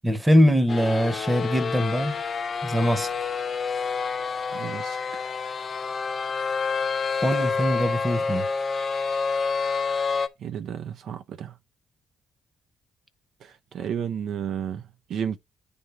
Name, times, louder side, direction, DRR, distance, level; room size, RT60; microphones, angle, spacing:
voice 1, 0.0-2.2 2.6-3.1 7.2-8.4, equal, 10° right, 0.9 m, -22 dB
sound 1, 0.7-10.3, left 5 dB, 45° left, 0.6 m, -28 dB
voice 2, 4.5-5.0 10.4-11.6 13.4-15.4, right 8 dB, 70° right, 0.5 m, -32 dB
9.7 x 3.5 x 3.2 m
cardioid pair, 90°, 0 cm